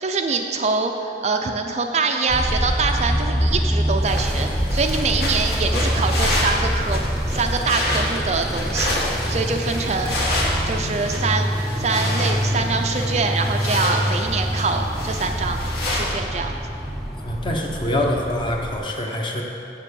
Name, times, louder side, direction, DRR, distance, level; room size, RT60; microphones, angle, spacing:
voice 1, 0.0-7.0 7.3-9.0 9.3-10.1 10.7-11.5 11.8-15.6 15.9-16.6, right 4 dB, 40° right, 4 dB, 0.5 m, -24 dB
Motorcycle, 2.3-18.8, equal, ahead, 0.7 m, -25 dB
sound 1, 4.0-16.1, left 1 dB, 60° left, 1.8 m, -29 dB
voice 2, 17.2-19.4, left 1 dB, 30° left, 0 dB, 1.0 m, -25 dB
7.2 x 6.9 x 7.0 m, 2.7 s
head